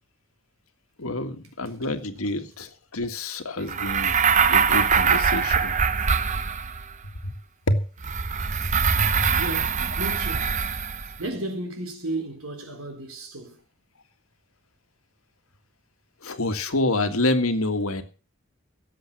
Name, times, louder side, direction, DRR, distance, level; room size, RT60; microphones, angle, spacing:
voice 1, 1.0-4.2 4.5-5.7 7.2-7.3 7.7-7.8 8.9-9.3 16.2-18.0, left 2 dB, 90° left, 1.9 m, -27 dB
sound 1, 3.7-6.9 8.0-11.2, right 6 dB, 35° right, 0.7 m, -23 dB
voice 2, 9.4-10.6 11.2-13.6, right 1 dB, 85° right, 3.7 m, -34 dB
17.0 x 7.8 x 6.1 m
head